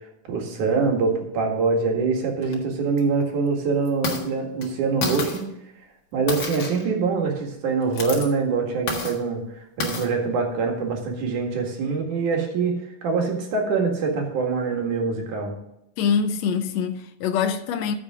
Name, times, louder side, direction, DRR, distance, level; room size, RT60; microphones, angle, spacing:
voice 1, 0.3-5.4 6.1-9.4 9.8-15.5, right 4 dB, 65° right, 3.3 m, -24 dB
sound 1, 2.4-2.6 3.0-3.1 3.9-4.2 4.6-4.7 5.0-5.4 6.3-6.9 7.8-8.3 8.9-9.2 9.8-10.1, left 3 dB, 45° left, 1.9 m, -29 dB
voice 2, 16.0-18.0, left 6 dB, 75° left, 1.6 m, -24 dB
14.0 x 6.7 x 3.7 m
omnidirectional pair, 3.9 m